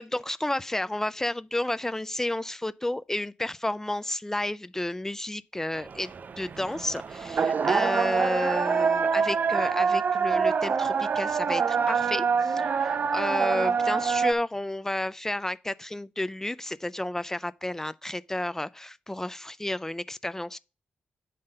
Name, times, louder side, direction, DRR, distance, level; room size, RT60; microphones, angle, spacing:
voice 1, 0.0-20.6, left 1 dB, 10° left, 0.3 m, -31 dB
sound 1, 5.8-14.3, right 6 dB, 55° right, 0.5 m, -26 dB
8.6 x 3.9 x 5.4 m
cardioid pair, 85°, 4 cm